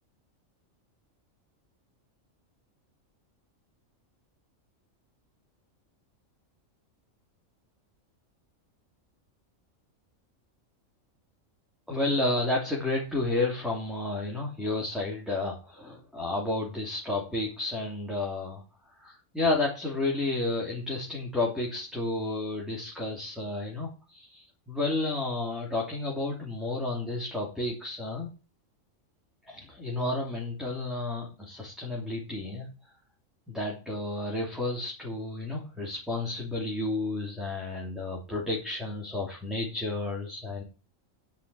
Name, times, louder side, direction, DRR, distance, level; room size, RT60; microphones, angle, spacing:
voice 1, 11.9-18.6 19.0-28.3 29.5-32.7 33.5-40.6, left 2 dB, ahead, -3 dB, 3.1 m, -31 dB
10.0 x 6.0 x 7.6 m, 0.35 s
omnidirectional pair, 1.4 m